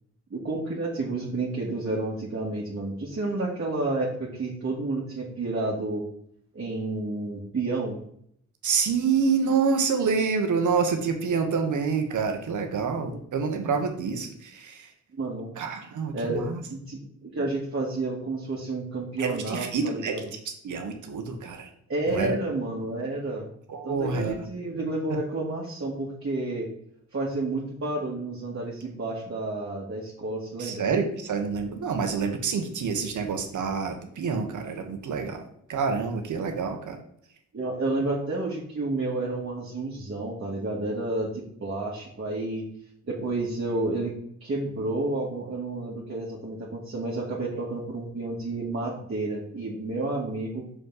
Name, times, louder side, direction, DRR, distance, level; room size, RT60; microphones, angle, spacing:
voice 1, 0.3-6.0 6.5-8.0 13.1-13.2 15.2-15.5 16.1-20.2 21.9-23.5 23.8-26.7 27.1-30.9 37.5-42.7 43.0-44.1 44.4-50.7, right 2 dB, 50° right, -5 dB, 1.9 m, -30 dB
voice 2, 8.6-14.9 15.6-16.6 19.2-20.1 20.6-21.7 22.1-22.4 23.7-24.4 30.6-37.0, right 5 dB, 80° right, 5 dB, 1.2 m, -27 dB
6.2 x 5.4 x 4.0 m, 0.67 s
cardioid pair, 65°, 30 cm